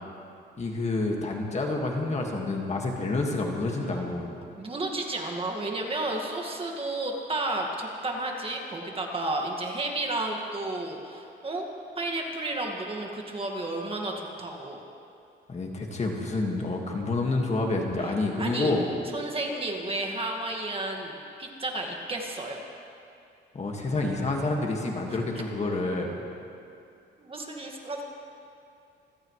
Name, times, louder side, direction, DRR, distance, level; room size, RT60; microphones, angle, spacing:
voice 1, 0.6-4.4 15.5-18.9 23.5-26.2, left 2 dB, 35° left, 1 dB, 2.0 m, -28 dB
voice 2, 4.5-11.7 12.0-14.8 18.4-18.7 19.1-21.1 21.4-22.6 27.2-28.0, right 2 dB, 30° right, 1 dB, 2.0 m, -32 dB
26.5 x 15.5 x 3.3 m, 2.6 s
cardioid pair, 115°, 20 cm